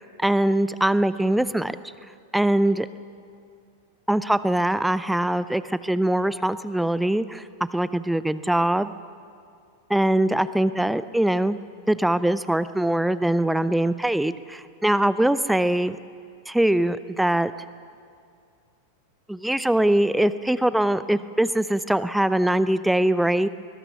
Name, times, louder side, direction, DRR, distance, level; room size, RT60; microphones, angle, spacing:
voice 1, 0.2-1.8 2.3-2.9 4.1-7.5 7.7-8.9 9.9-11.6 11.9-16.0 16.5-17.5 19.3-23.5, right 1 dB, 5° right, 15 dB, 0.5 m, -22 dB
22.0 x 20.0 x 7.0 m, 2.3 s
figure-of-eight pair, 90°, 0 cm